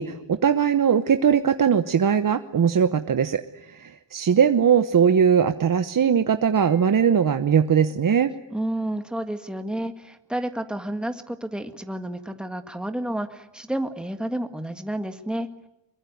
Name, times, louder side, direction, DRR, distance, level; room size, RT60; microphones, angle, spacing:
voice 1, 0.0-8.3, right 7 dB, 45° right, 9 dB, 1.0 m, -20 dB
Mallet percussion, 6.6-9.1, left 7 dB, 45° left, 4.9 m, -47 dB
voice 2, 8.5-15.5, right 1 dB, ahead, 7 dB, 1.7 m, -30 dB
23.5 x 22.0 x 9.4 m, 0.88 s
wide cardioid pair, 125°, 44 cm